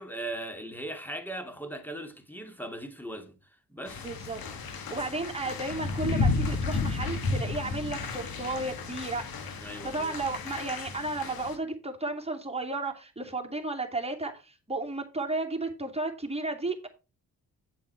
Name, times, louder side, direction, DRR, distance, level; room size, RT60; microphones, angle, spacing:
voice 1, 0.0-3.4 3.7-4.0 9.6-10.2, right 1 dB, 5° left, 2.4 m, -39 dB
sound 1, 3.9-11.6, left 3 dB, 65° left, 1.7 m, -32 dB
voice 2, 4.0-4.4 4.7-9.3 9.8-16.9, right 2 dB, 15° right, 2.7 m, -33 dB
7.6 x 7.5 x 4.6 m
supercardioid pair, 45°, 38 cm